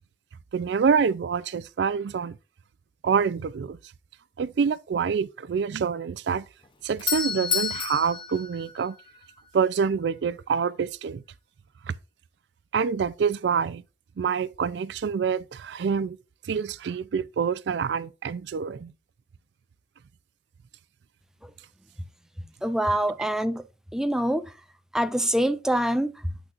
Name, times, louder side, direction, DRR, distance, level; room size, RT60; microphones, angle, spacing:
voice 1, 0.5-2.4 3.0-3.8 4.4-6.4 6.8-9.0 9.5-11.2 11.9-12.0 12.7-13.8 14.2-16.2 16.4-18.9, right 6 dB, 70° right, 0.4 m, -26 dB
Doorbell, 6.6-9.5, left 6 dB, 30° left, 0.7 m, -30 dB
voice 2, 22.6-23.6 23.9-24.5 24.9-26.3, right 1 dB, 5° right, 0.4 m, -25 dB
8.0 x 6.1 x 2.5 m
head